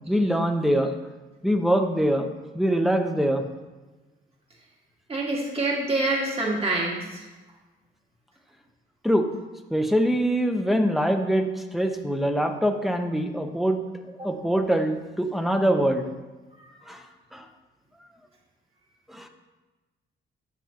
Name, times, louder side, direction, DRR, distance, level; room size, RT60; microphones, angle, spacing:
voice 1, 0.1-0.9 1.4-2.3 2.5-3.4 9.0-9.3 9.7-13.8 14.2-16.1 16.9-17.0 17.3-17.4 19.1-19.3, equal, ahead, 4 dB, 0.8 m, -23 dB
voice 2, 5.1-7.2, right 2 dB, 30° right, -3 dB, 1.9 m, -26 dB
9.7 x 6.9 x 2.9 m, 1.2 s
cardioid pair, 90°, 20 cm